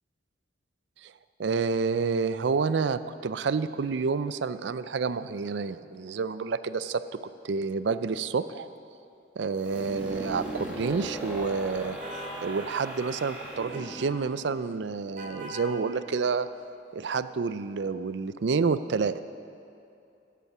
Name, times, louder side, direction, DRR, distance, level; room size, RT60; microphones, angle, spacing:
voice 1, 1.4-7.0 7.4-8.7 9.4-12.0 12.4-16.5 16.9-19.2, right 5 dB, 75° right, 14 dB, 0.4 m, -29 dB
sound 1, 9.6-15.3, right 1 dB, 10° right, 1.9 m, -39 dB
sound 2, 12.0-12.4 13.7-14.1 15.2-15.7, equal, 45° right, 2.1 m, -40 dB
15.5 x 8.4 x 6.0 m, 2.7 s
head